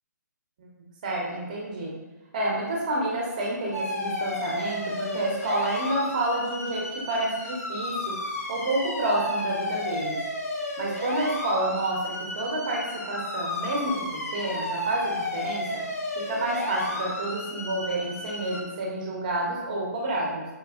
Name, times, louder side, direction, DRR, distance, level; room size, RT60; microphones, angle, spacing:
voice 1, 1.0-1.9 2.3-10.2 10.8-15.8 16.2-20.5, right 1 dB, 25° right, -2 dB, 0.6 m, -29 dB
sound 1, 3.7-18.6, left 2 dB, 60° left, 0.7 m, -33 dB
4.2 x 2.5 x 2.4 m, 1.1 s
hypercardioid pair, 175°, 10 cm